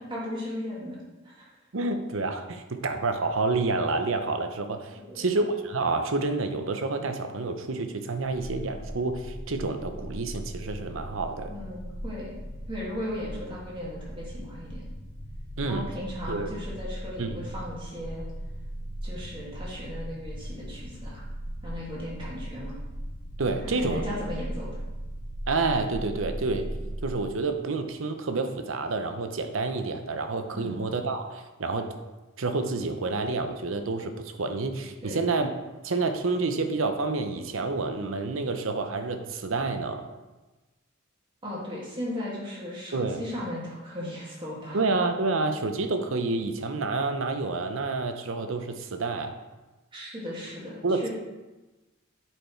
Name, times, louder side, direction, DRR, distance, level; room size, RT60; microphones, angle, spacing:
voice 1, 0.1-1.0 1.2-1.5 5.0-5.3 11.4-12.3 12.7-14.9 15.6-18.2 19.0-21.2 21.6-22.8 23.7-24.7 30.5-30.8 35.0-35.2 41.4-44.8 49.9-51.1, left 1 dB, 25° right, -6 dB, 2.1 m, -37 dB
voice 2, 1.7-11.5 15.6-15.9 16.3-16.5 17.2-17.4 23.4-24.0 25.5-26.7 27.0-31.9 32.4-35.5 35.8-40.1 42.9-43.2 44.7-49.3 50.8-51.1, right 3 dB, 70° right, 7 dB, 0.7 m, -29 dB
sound 1, 8.3-27.1, equal, 45° left, 0.7 m, -38 dB
8.1 x 4.5 x 4.5 m, 1.1 s
head